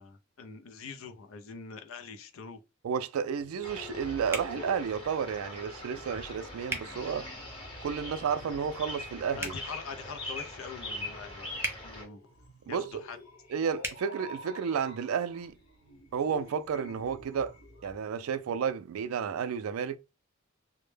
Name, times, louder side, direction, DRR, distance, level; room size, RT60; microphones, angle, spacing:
voice 1, 0.0-2.6 9.4-12.2 12.7-13.2, left 5 dB, 70° left, 0.4 m, -44 dB
voice 2, 2.8-7.2 7.8-9.5 12.7-13.0 13.5-15.6 16.1-17.5 17.8-20.0, right 7 dB, 85° right, 0.3 m, -32 dB
sound 1, 3.3-17.9, left 2 dB, 90° left, 1.1 m, -50 dB
sound 2, 3.6-12.0, left 1 dB, 25° left, 0.9 m, -42 dB
sound 3, 4.3-4.5 6.7-6.9 9.3-9.6 11.6-11.8 13.8-14.0, right 2 dB, 10° right, 0.5 m, -34 dB
2.1 x 2.1 x 3.1 m
head